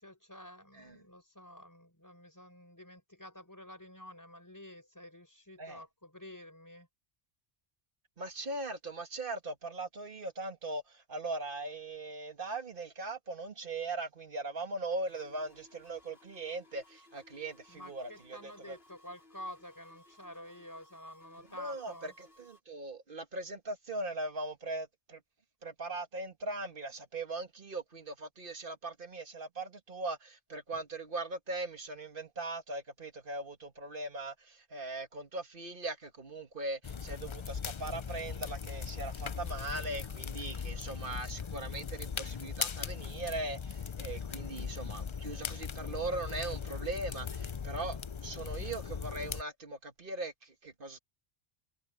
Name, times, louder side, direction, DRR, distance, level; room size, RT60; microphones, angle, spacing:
voice 1, 0.0-6.9 17.7-22.1 30.7-30.8, left 1 dB, 15° left, 5.0 m, -50 dB
voice 2, 8.2-18.8 21.6-25.2 25.6-51.0, right 2 dB, 55° right, 1.9 m, -40 dB
sound 1, 15.1-22.6, left 2 dB, 70° left, 6.6 m, -61 dB
sound 2, 36.8-49.4, left 6 dB, 40° left, 0.5 m, -39 dB
omnidirectional pair, 1.1 m